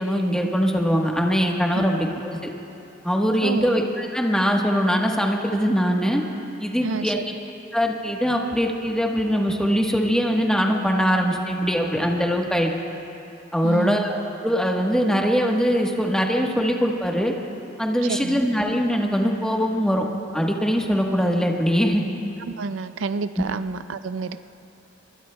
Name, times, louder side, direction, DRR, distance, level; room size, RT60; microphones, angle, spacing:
voice 1, 0.0-2.4 3.0-6.2 6.6-7.2 7.7-12.7 13.5-17.3 17.8-20.0 20.3-22.0, equal, 5° left, 0 dB, 1.2 m, -22 dB
voice 2, 6.8-7.2 13.6-14.1 18.0-18.4 22.4-24.4, right 4 dB, 85° right, 12 dB, 0.4 m, -29 dB
24.5 x 23.0 x 2.2 m, 2.8 s
head